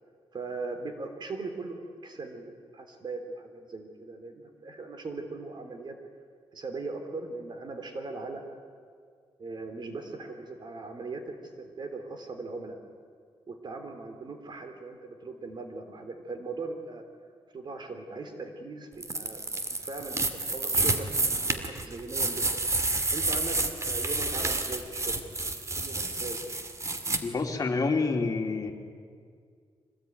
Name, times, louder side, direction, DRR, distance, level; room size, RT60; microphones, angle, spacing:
voice 1, 0.3-6.0 6.5-8.4 9.4-12.8 13.5-17.0 17.5-19.4 19.8-26.5, right 3 dB, 50° right, 6 dB, 3.3 m, -39 dB
sound 1, 19.0-27.2, right 2 dB, 30° right, 2.2 m, -29 dB
voice 2, 27.2-28.7, left 4 dB, 35° left, 3 dB, 2.8 m, -28 dB
24.5 x 19.0 x 9.3 m, 2.1 s
cardioid pair, 95°, 10 cm